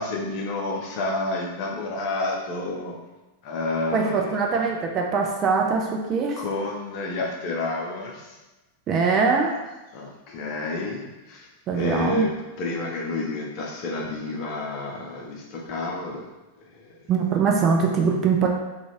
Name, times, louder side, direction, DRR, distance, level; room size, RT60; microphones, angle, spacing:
voice 1, 0.0-2.9 3.4-4.7 6.4-8.4 9.9-11.5 11.7-12.3 12.6-16.3 16.7-16.8, left 2 dB, 40° left, -1 dB, 0.6 m, -30 dB
voice 2, 3.9-6.4 8.9-9.5 11.7-12.3 17.1-18.5, right 5 dB, 30° right, 1 dB, 0.4 m, -22 dB
2.5 x 2.4 x 3.0 m, 1.1 s
figure-of-eight pair, 90°, 0 cm